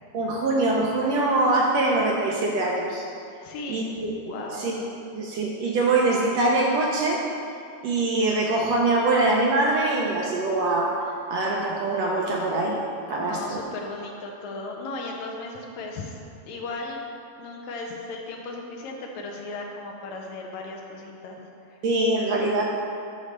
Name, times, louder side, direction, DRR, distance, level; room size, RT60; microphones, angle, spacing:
voice 1, 0.1-3.0 3.7-4.1 4.5-4.8 5.1-7.3 7.8-12.8 13.1-13.6 21.8-22.6, right 2 dB, 75° right, -2 dB, 1.6 m, -23 dB
voice 2, 3.4-3.9 4.3-4.7 13.1-16.2 16.5-17.0 17.4-21.8, left 2 dB, 75° left, 1 dB, 1.9 m, -36 dB
9.0 x 3.2 x 6.4 m, 2.4 s
omnidirectional pair, 3.5 m